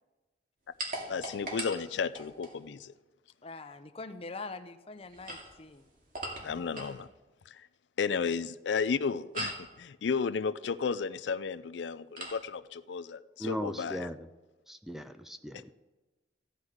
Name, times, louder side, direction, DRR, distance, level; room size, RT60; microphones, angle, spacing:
sound 1, 0.8-2.6 5.0-7.0 9.3-9.7 12.2-12.4, right 1 dB, 50° right, 2.4 m, -40 dB
voice 1, 1.1-2.9 6.4-7.1 7.5-7.7 8.0-14.1 15.5-15.6, left 5 dB, 75° left, 15 dB, 0.4 m, -33 dB
voice 2, 3.4-5.9, left 3 dB, 35° left, 9 dB, 0.7 m, -43 dB
voice 3, 13.4-14.2 14.7-15.6, equal, ahead, 9 dB, 0.4 m, -37 dB
14.5 x 9.7 x 4.9 m, 1.2 s
head